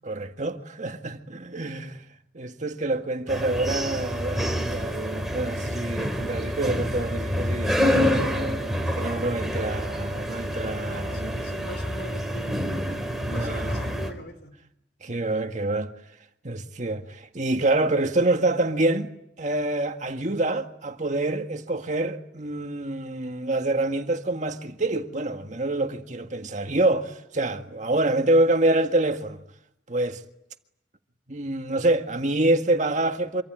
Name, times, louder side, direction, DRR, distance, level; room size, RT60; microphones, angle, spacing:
voice 1, 0.0-2.0 2.3-11.4 13.1-13.7 15.0-15.9 16.4-19.1 19.4-29.4 29.9-30.2 31.3-33.4, right 2 dB, 45° right, 1.8 m, -26 dB
sound 1, 3.3-14.1, equal, ahead, 4.1 m, -27 dB
voice 2, 10.8-14.5, left 1 dB, 70° left, 4.5 m, -42 dB
26.5 x 24.5 x 9.1 m
head